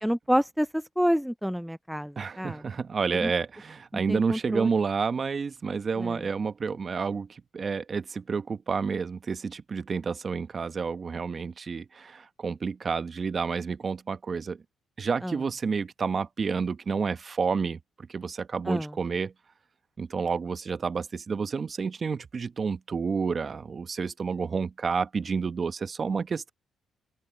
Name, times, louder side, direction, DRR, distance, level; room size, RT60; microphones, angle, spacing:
voice 1, 0.0-2.6 3.2-3.3 3.9-4.7 6.0-6.2 15.2-15.4 18.7-18.9, equal, ahead, 0.3 m, -28 dB
voice 2, 2.2-14.6 15.0-19.3 20.0-26.5, right 5 dB, 40° right, 1.0 m, -30 dB
open air
cardioid pair, 90°, 0 cm